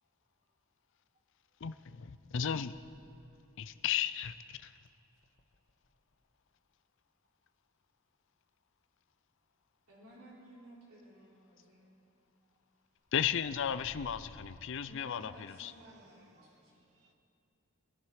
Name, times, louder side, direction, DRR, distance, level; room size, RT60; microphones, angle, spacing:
voice 1, 1.6-2.7 3.6-4.7 13.1-15.3 15.6-15.7, left 8 dB, 55° left, 13 dB, 0.5 m, -34 dB
sound 1, 2.3-3.6 5.2-6.1 13.1-14.8, left 1 dB, 40° left, 0.9 m, -56 dB
voice 2, 9.9-11.9 14.8-16.7, equal, 70° right, -5 dB, 3.8 m, -56 dB
voice 3, 15.2-17.1, right 3 dB, 35° right, 3 dB, 1.5 m, -65 dB
23.5 x 11.0 x 4.8 m, 2.7 s
head